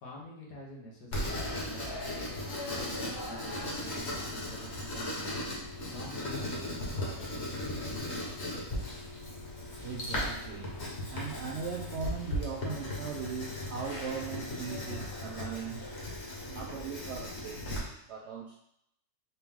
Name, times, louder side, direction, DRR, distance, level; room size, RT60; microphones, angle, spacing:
voice 1, 0.0-2.4 2.8-5.4 5.9-8.7, left 1 dB, 90° left, -3 dB, 1.7 m, -48 dB
Writing, 1.1-17.8, left 1 dB, 45° left, 1.3 m, -37 dB
voice 2, 9.8-10.8 11.1-15.9 16.4-18.5, right 6 dB, 75° right, -1 dB, 0.6 m, -39 dB
4.3 x 3.0 x 3.6 m, 0.73 s
omnidirectional pair, 1.7 m